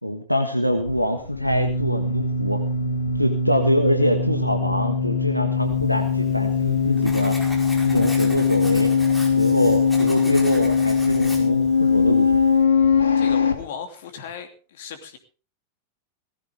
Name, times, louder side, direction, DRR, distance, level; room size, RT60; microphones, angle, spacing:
voice 1, 0.0-2.6 3.2-7.4 7.9-8.9 9.4-12.4, equal, 90° left, 5 dB, 1.5 m, -24 dB
sound 1, 0.7-13.5, left 5 dB, 70° left, 2.0 m, -21 dB
Writing, 5.9-12.6, left 1 dB, ahead, 4.9 m, -40 dB
voice 2, 13.2-15.2, left 7 dB, 55° left, 7 dB, 2.8 m, -37 dB
18.5 x 15.0 x 3.5 m, 0.35 s
figure-of-eight pair, 90°, 0 cm